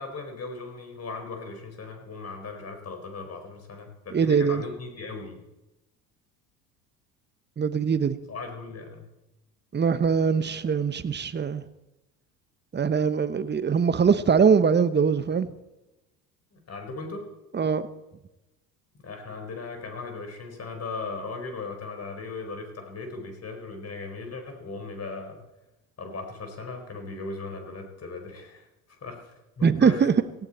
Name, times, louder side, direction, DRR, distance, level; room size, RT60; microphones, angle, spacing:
voice 1, 0.0-5.4 8.3-9.1 16.5-17.3 19.0-25.5 26.0-30.0, left 3 dB, 30° left, 4.6 m, -38 dB
voice 2, 4.1-4.6 7.6-8.2 9.7-11.6 12.7-15.5 17.5-17.9 29.6-30.1, right 6 dB, 20° right, 1.1 m, -22 dB
18.0 x 16.0 x 4.4 m
hypercardioid pair, 70°, 47 cm